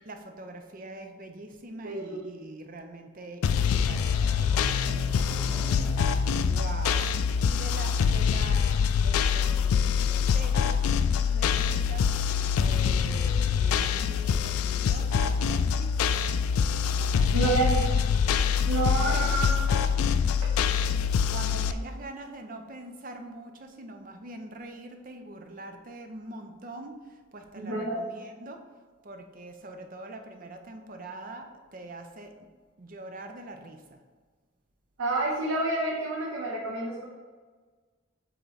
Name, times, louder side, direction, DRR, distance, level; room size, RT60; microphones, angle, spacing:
voice 1, 0.0-16.0 16.9-18.0 18.9-19.4 21.3-28.6 29.0-32.3 32.8-34.0, right 2 dB, 40° right, 5 dB, 0.6 m, -44 dB
voice 2, 1.8-2.3 17.3-17.8 18.7-19.8 20.4-20.5 27.6-28.0 35.0-37.0, right 2 dB, 75° right, -3 dB, 0.8 m, -29 dB
sound 1, 3.4-21.7, left 7 dB, 90° left, 0.3 m, -25 dB
sound 2, 3.9-9.4 9.7-9.8 10.0-10.1 10.4-10.5, left 1 dB, ahead, 0.6 m, -38 dB
7.9 x 3.1 x 3.9 m, 1.5 s
head